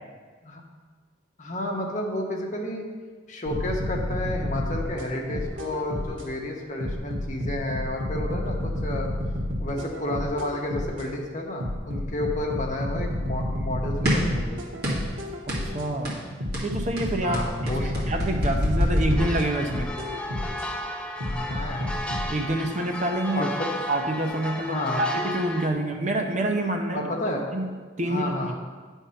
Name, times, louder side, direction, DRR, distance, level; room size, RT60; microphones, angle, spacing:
voice 1, 1.4-2.8 3.3-9.1 9.6-14.6 17.2-18.0 21.2-21.9 23.3-23.5 24.6-25.0 26.9-27.5 28.1-28.5, left 1 dB, 40° left, 0 dB, 1.0 m, -31 dB
sound 1, 3.5-6.3 6.8-11.1 11.6-15.9 16.4-20.7 21.2-22.3, left 1 dB, 90° right, 1.5 m, -30 dB
sound 2, 14.0-14.4 14.8-15.1 15.5-15.7 16.0-16.3 16.5-19.9, equal, 55° right, 2.0 m, -26 dB
voice 2, 15.5-16.2 16.6-19.9 22.3-23.5 23.9-27.0 27.5-27.7 28.0-28.5, right 1 dB, 35° right, 3 dB, 0.7 m, -27 dB
sound 3, 19.2-25.7, left 1 dB, 5° left, 0.4 m, -34 dB
9.6 x 3.6 x 5.7 m, 1.5 s
head